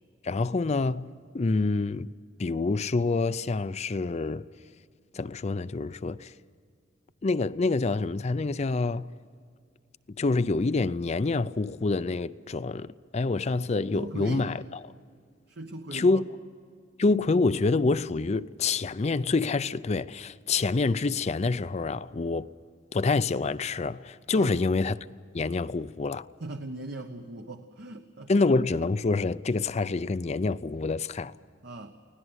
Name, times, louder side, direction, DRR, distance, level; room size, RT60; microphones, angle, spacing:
voice 1, 0.2-2.1 2.4-4.4 5.1-6.3 7.2-9.1 10.2-14.8 15.9-16.3 17.0-22.5 22.9-25.0 25.3-26.3 28.3-31.3, left 3 dB, 35° left, 0.5 m, -27 dB
voice 2, 13.9-14.5 15.5-16.2 24.3-24.6 26.4-28.3 31.6-31.9, right 2 dB, 65° right, 1.1 m, -39 dB
24.5 x 17.0 x 8.0 m
head